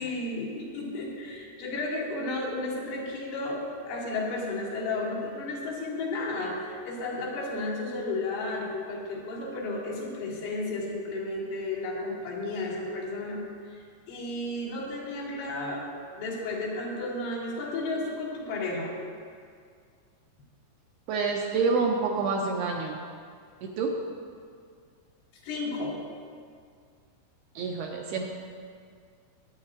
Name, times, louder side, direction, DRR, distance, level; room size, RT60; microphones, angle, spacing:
voice 1, 0.0-13.4 14.1-15.9 16.2-19.0 25.4-26.0, left 2 dB, 85° left, -8 dB, 5.1 m, -33 dB
voice 2, 21.1-23.0 23.6-23.9 27.6-28.2, right 4 dB, 80° right, 0 dB, 2.4 m, -27 dB
22.0 x 9.2 x 2.7 m, 2.1 s
omnidirectional pair, 5.3 m